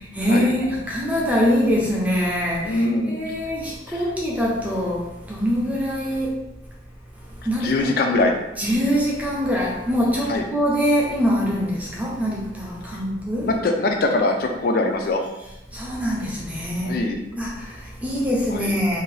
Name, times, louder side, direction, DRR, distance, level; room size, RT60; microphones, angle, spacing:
voice 1, 0.1-6.4 7.4-7.9 8.6-13.5 15.7-17.0 17.4-19.0, equal, 10° right, -4 dB, 0.5 m, -23 dB
voice 2, 2.6-3.2 3.9-4.0 7.6-8.3 10.3-10.5 13.4-15.2 16.8-17.2 18.5-18.7, left 2 dB, 55° left, 4 dB, 0.4 m, -22 dB
2.7 x 2.2 x 3.2 m, 0.94 s
head